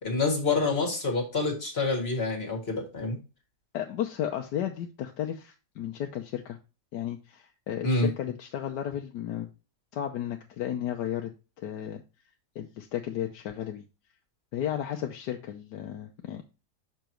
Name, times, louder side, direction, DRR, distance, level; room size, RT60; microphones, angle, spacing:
voice 1, 0.0-3.2 7.8-8.1, left 3 dB, 40° left, 1 dB, 2.0 m, -27 dB
voice 2, 3.7-6.6 6.9-9.5 9.9-11.3 11.6-12.0 12.5-13.8 14.5-16.4, left 10 dB, 85° left, 3 dB, 1.3 m, -33 dB
6.8 x 6.1 x 3.0 m, 0.30 s
omnidirectional pair, 1.8 m